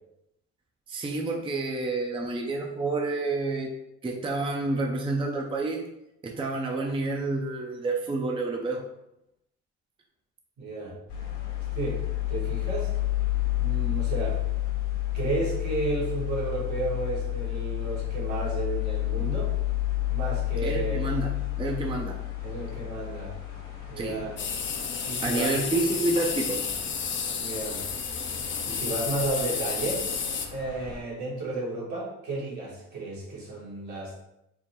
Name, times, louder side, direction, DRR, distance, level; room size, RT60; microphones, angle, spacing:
voice 1, 0.9-3.7 4.0-5.9 6.2-8.8 20.6-22.2 24.0-24.2 25.2-26.6, right 2 dB, 20° right, 1 dB, 0.5 m, -29 dB
voice 2, 10.6-11.0 11.7-12.0 12.3-12.9 13.6-14.4 15.1-19.5 20.1-21.0 21.8-22.0 22.4-23.3 23.9-24.4 25.0-25.7 27.3-27.8 28.6-30.0 30.5-34.2, right 2 dB, 70° right, -4 dB, 1.5 m, -32 dB
sound 1, 11.1-31.0, left 15 dB, 75° left, 1.0 m, -31 dB
sound 2, 24.4-30.5, left 6 dB, 40° left, 0.5 m, -31 dB
3.7 x 2.1 x 4.3 m, 0.85 s
cardioid pair, 90°, 30 cm